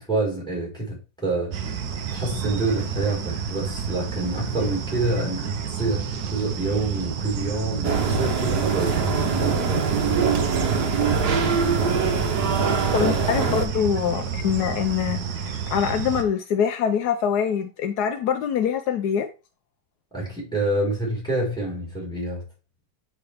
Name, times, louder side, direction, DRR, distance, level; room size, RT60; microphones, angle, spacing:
voice 1, 0.0-1.8 2.1-9.9 13.0-13.3 20.1-22.4, right 2 dB, ahead, 4.3 m, -27 dB
sound 1, 1.5-16.2, right 7 dB, 75° right, 1.4 m, -30 dB
sound 2, 7.8-13.7, right 5 dB, 90° right, 1.8 m, -23 dB
voice 2, 12.9-19.3, left 8 dB, 80° left, 1.2 m, -24 dB
8.3 x 4.6 x 3.4 m
omnidirectional pair, 1.7 m